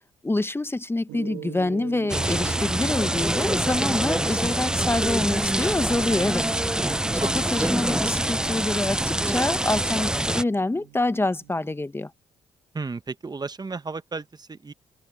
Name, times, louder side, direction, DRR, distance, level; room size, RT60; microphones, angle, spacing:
voice 1, 0.2-6.4 7.1-12.1, left 2 dB, 15° left, 1.0 m, -26 dB
Gong, 1.1-11.7, right 19 dB, 85° right, 1.7 m, -45 dB
sound 1, 2.1-10.4, right 1 dB, 5° right, 0.5 m, -25 dB
voice 2, 7.2-7.7 12.7-14.7, right 4 dB, 30° right, 1.2 m, -34 dB
hypercardioid pair, 55°, 14 cm